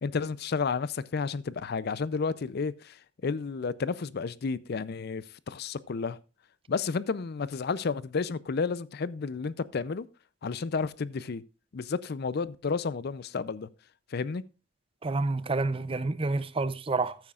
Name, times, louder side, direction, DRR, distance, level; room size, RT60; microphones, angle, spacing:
voice 1, 0.0-3.0 3.2-6.2 6.7-10.1 10.4-11.4 11.7-13.7 14.1-14.4, left 5 dB, 55° left, 0.5 m, -31 dB
voice 2, 15.0-17.2, right 3 dB, 25° right, 0.5 m, -29 dB
14.0 x 9.0 x 2.4 m
head